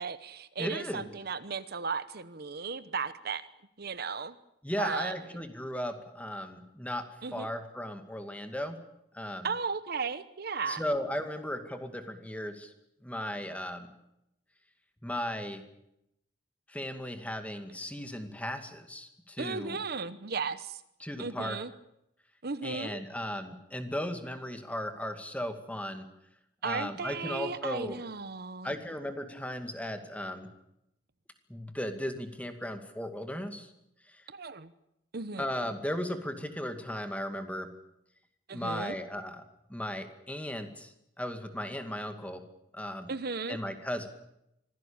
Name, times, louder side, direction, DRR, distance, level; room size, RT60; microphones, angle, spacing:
voice 1, 0.0-3.5 3.8-4.4 4.8-5.1 7.2-7.5 9.4-10.8 19.4-20.8 21.2-21.7 22.4-23.0 26.6-28.7 34.3-34.7 35.1-35.5 38.5-39.0 43.1-43.6, right 5 dB, 55° right, 14 dB, 1.0 m, -35 dB
voice 2, 0.6-1.1 4.6-7.0 7.3-8.8 9.1-9.5 10.7-12.7 13.0-13.9 15.0-15.6 16.7-19.8 21.0-21.6 22.6-26.1 26.6-28.0 28.6-30.5 31.5-33.7 35.4-37.7 38.5-39.4 39.7-42.4 42.7-43.1 43.5-44.1, equal, 10° left, 7 dB, 2.3 m, -36 dB
25.0 x 17.0 x 8.8 m, 0.82 s
head